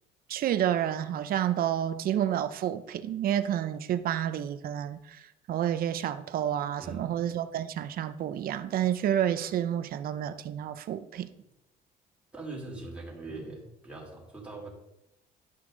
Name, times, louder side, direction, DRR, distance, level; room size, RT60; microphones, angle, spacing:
voice 1, 0.3-5.2 5.5-11.3, right 10 dB, 60° right, 0.7 m, -29 dB
voice 2, 6.8-7.1 12.3-14.7, right 2 dB, 5° right, 3.3 m, -41 dB
11.5 x 6.1 x 3.9 m
cardioid pair, 110°, 17 cm